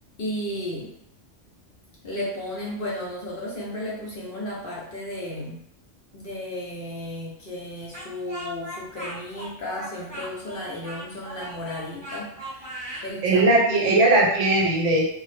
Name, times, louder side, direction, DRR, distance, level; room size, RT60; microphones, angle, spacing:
voice 1, 0.2-0.9 2.0-5.6 6.1-12.7 13.0-13.4 13.7-13.9, left 1 dB, 60° left, -4 dB, 0.7 m, -34 dB
Speech, 7.9-13.1, right 1 dB, 15° right, 0.8 m, -38 dB
voice 2, 13.2-15.0, right 2 dB, 75° right, -2 dB, 1.0 m, -19 dB
2.1 x 2.0 x 3.1 m, 0.70 s
omnidirectional pair, 1.3 m